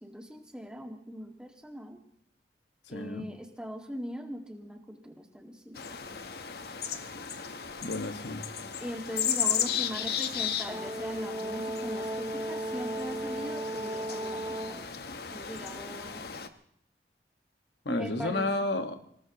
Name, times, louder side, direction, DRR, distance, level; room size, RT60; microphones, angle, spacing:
voice 1, 0.0-2.0 2.9-5.8 8.8-14.9 15.3-16.2 17.9-18.5, equal, 5° right, 2 dB, 1.9 m, -40 dB
voice 2, 2.9-3.3 7.8-8.5 17.8-19.0, left 2 dB, 80° left, 7 dB, 1.6 m, -31 dB
sound 1, 5.8-16.5, left 8 dB, 60° left, 1.1 m, -35 dB
Brass instrument, 10.7-14.9, right 1 dB, 20° right, 0.6 m, -36 dB
25.5 x 18.0 x 3.0 m, 0.70 s
head